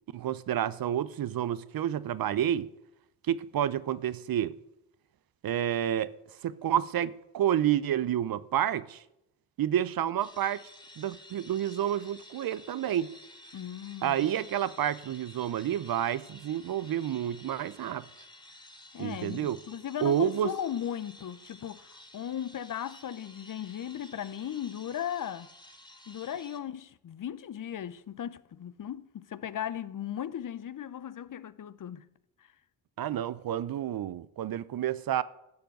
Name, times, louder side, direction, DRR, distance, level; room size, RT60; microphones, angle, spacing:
voice 1, 0.1-2.7 3.3-4.5 5.4-6.1 6.4-9.0 9.6-10.6 11.0-13.1 14.0-18.0 19.0-19.6 20.0-20.5 33.0-35.2, right 10 dB, 45° right, 0.7 m, -29 dB
sound 1, 10.2-26.6, left 1 dB, 10° left, 1.7 m, -53 dB
voice 2, 13.5-14.2 18.9-25.5 26.1-32.1 32.4-32.5, left 10 dB, 40° left, 0.7 m, -37 dB
12.0 x 6.8 x 7.8 m
hypercardioid pair, 50°, 48 cm